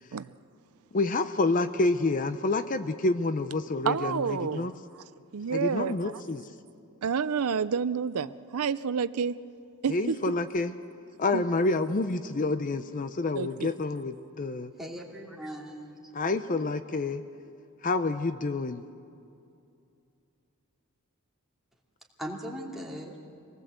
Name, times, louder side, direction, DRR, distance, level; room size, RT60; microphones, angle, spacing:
voice 1, 0.9-4.7 5.5-6.5 9.9-10.7 11.2-14.7 16.1-17.2 17.8-18.8, left 3 dB, 35° left, 11 dB, 0.6 m, -28 dB
voice 2, 3.8-4.7 4.9-5.0 5.3-6.2 7.0-9.4 9.8-10.4 11.3-11.4 13.3-13.7, right 6 dB, 85° right, 15 dB, 0.5 m, -29 dB
voice 3, 14.8-16.1 22.2-23.1, equal, ahead, -2 dB, 2.7 m, -39 dB
26.0 x 19.0 x 8.0 m, 2.6 s
head